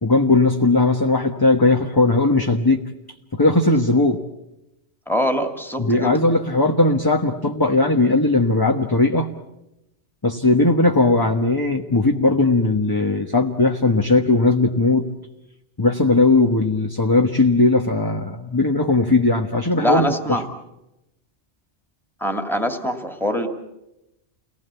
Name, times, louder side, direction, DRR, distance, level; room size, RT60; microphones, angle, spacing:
voice 1, 0.0-2.8 3.3-4.2 5.8-9.3 10.2-15.0 15.8-20.4, left 2 dB, 20° left, 2 dB, 1.3 m, -18 dB
voice 2, 5.1-6.1 19.8-20.5 22.2-23.5, equal, ahead, 5 dB, 2.3 m, -23 dB
30.0 x 19.5 x 8.3 m, 0.91 s
omnidirectional pair, 1.2 m